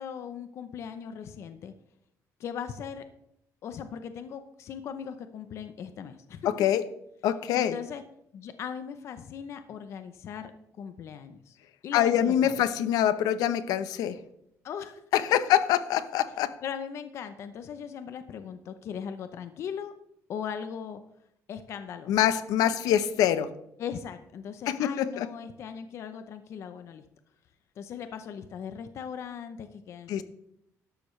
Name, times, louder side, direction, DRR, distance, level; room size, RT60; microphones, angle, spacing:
voice 1, 0.0-1.7 2.4-3.1 3.6-6.5 7.6-8.0 8.3-10.5 10.8-11.6 11.8-12.6 14.6-15.0 16.6-19.9 20.3-21.0 21.5-22.2 23.8-27.0 27.8-30.2, left 7 dB, 50° left, 10 dB, 0.7 m, -38 dB
voice 2, 6.4-6.8 7.2-7.7 11.9-14.2 15.1-16.5 22.1-23.5 24.7-25.3 30.1-30.2, left 11 dB, 90° left, 13 dB, 0.8 m, -25 dB
13.0 x 12.0 x 3.2 m, 0.77 s
cardioid pair, 175°, 6 cm